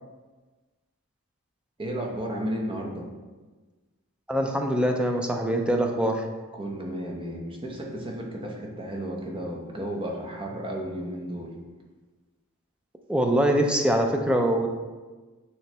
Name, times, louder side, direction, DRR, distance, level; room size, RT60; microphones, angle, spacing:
voice 1, 1.8-3.1 6.5-11.5, equal, 25° right, 0 dB, 0.9 m, -33 dB
voice 2, 4.3-6.2 13.1-14.7, right 1 dB, 5° right, 2 dB, 0.5 m, -23 dB
9.0 x 3.1 x 3.3 m, 1.3 s
head